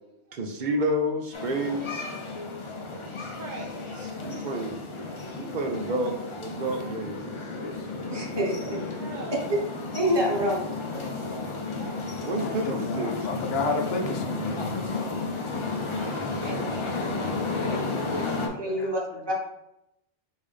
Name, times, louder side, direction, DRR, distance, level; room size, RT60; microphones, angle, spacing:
voice 1, 0.3-2.0 3.2-6.1 6.4-7.4 8.6-8.7 9.0-9.3 11.0-13.3 15.7-16.6 18.5-18.8, right 1 dB, 50° right, 3 dB, 0.6 m, -32 dB
sound 1, 1.3-18.5, left 3 dB, 45° left, 0.4 m, -33 dB
voice 2, 8.1-8.8 9.9-10.6 18.1-19.3, equal, 25° right, -3 dB, 1.0 m, -27 dB
voice 3, 12.4-14.7 15.9-17.9 18.4-18.9, left 3 dB, 65° left, 5 dB, 0.8 m, -34 dB
5.3 x 2.7 x 3.3 m, 0.85 s
omnidirectional pair, 1.2 m